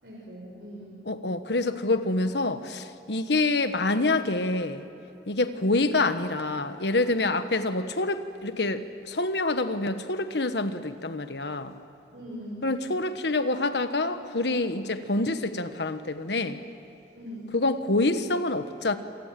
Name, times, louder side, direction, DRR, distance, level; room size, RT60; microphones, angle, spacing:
voice 1, 0.0-1.1 12.1-12.8 17.1-17.6, equal, 70° right, -4 dB, 5.5 m, -41 dB
voice 2, 1.1-4.8 5.3-11.7 12.6-16.6 17.5-19.0, left 2 dB, 75° left, 9 dB, 1.4 m, -27 dB
28.0 x 27.0 x 7.7 m, 2.7 s
head